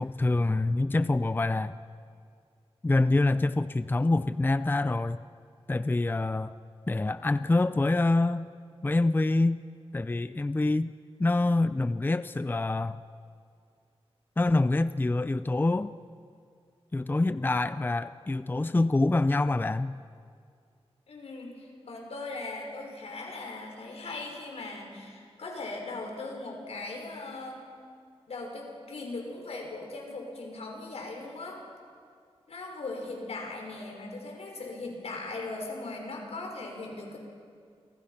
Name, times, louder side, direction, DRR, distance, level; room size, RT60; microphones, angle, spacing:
voice 1, 0.0-1.8 2.8-5.2 5.7-6.5 6.9-8.5 8.8-9.6 9.9-10.9 11.2-13.0 14.4-15.9 16.9-20.0, left 2 dB, 20° left, 13 dB, 0.5 m, -26 dB
voice 2, 21.1-27.6 28.3-31.6 32.5-37.2, left 2 dB, 85° left, 1 dB, 5.9 m, -39 dB
29.0 x 26.5 x 5.9 m, 2.2 s
wide cardioid pair, 100°, 10 cm